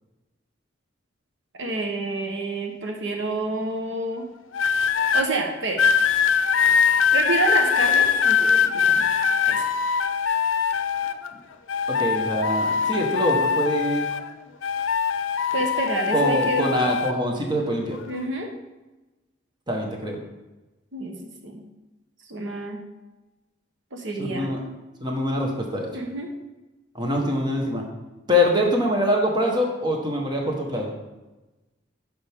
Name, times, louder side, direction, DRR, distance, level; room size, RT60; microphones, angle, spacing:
voice 1, 1.6-4.3 5.1-5.8 7.1-9.1 9.4-9.7 15.5-16.7 18.1-18.5 20.9-21.6 22.3-22.8 23.9-24.5 25.9-26.3, right 2 dB, 75° right, 2 dB, 1.1 m, -28 dB
sound 1, 4.5-5.3 5.8-11.3 11.7-14.3 14.6-17.1 17.9-18.2, left 7 dB, 85° left, 0.5 m, -22 dB
voice 2, 11.9-14.1 16.1-18.0 19.7-20.2 24.2-24.6 25.0-25.9 26.9-27.8 28.3-30.9, left 1 dB, 25° right, 0 dB, 1.3 m, -24 dB
10.5 x 6.1 x 3.6 m, 1.1 s
head